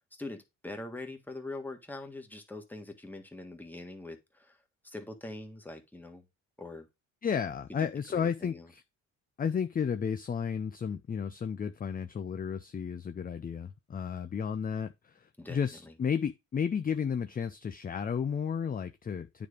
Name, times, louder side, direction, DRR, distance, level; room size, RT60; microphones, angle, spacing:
voice 1, 0.2-4.6 4.8-6.3 6.6-6.9 7.8-8.7 15.4-15.9, left 2 dB, 5° left, 1.7 m, -43 dB
voice 2, 7.2-8.8 9.4-19.5, left 7 dB, 30° left, 0.5 m, -33 dB
9.3 x 3.4 x 5.0 m
cardioid pair, 90°, 30 cm